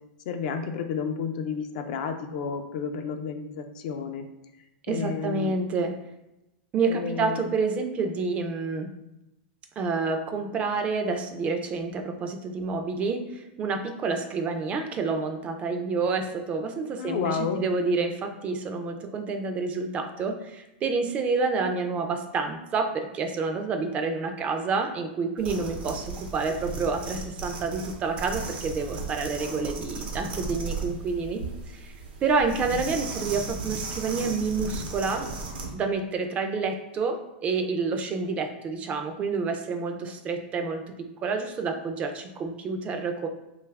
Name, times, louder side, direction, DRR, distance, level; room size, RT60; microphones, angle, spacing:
voice 1, 0.3-4.3 4.9-5.6 6.8-7.4 17.0-17.6, left 6 dB, 60° left, 6 dB, 0.4 m, -31 dB
voice 2, 4.9-6.0 6.7-8.9 9.8-31.9 32.2-35.3 35.7-43.3, right 4 dB, 25° right, 5 dB, 0.3 m, -28 dB
sound 1, 25.4-35.7, right 4 dB, 80° right, 0.7 m, -36 dB
2.7 x 2.3 x 3.2 m, 0.93 s
hypercardioid pair, 130°, 5 cm